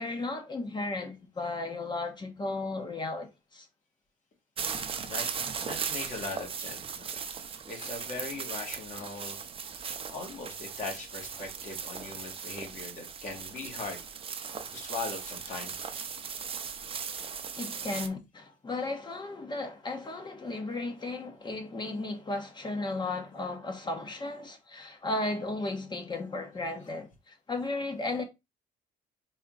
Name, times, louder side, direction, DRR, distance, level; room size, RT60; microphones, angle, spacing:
voice 1, 0.0-3.7 17.6-28.2, left 2 dB, 25° left, 1.1 m, -35 dB
sound 1, 4.6-18.1, right 6 dB, 35° right, 0.7 m, -38 dB
voice 2, 4.7-7.1 7.7-9.4 10.1-14.0 14.7-16.1 26.8-26.9, left 3 dB, 50° left, 1.9 m, -40 dB
4.2 x 3.0 x 3.8 m
cardioid pair, 110°, 17 cm